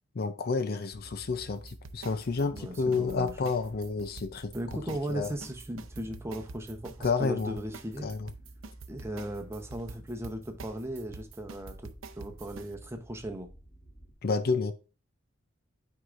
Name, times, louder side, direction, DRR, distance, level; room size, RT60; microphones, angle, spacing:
voice 1, 0.2-4.5 5.1-5.3 7.0-7.6 8.0-8.3 14.2-14.7, left 4 dB, 50° left, 0.5 m, -30 dB
sound 1, 0.9-14.1, right 1 dB, 30° left, 1.9 m, -52 dB
sound 2, 1.7-12.7, right 4 dB, 70° right, 0.6 m, -47 dB
voice 2, 2.5-3.3 4.5-8.1 8.9-11.9 12.2-13.5, right 1 dB, 15° right, 0.8 m, -37 dB
9.3 x 4.7 x 2.5 m
head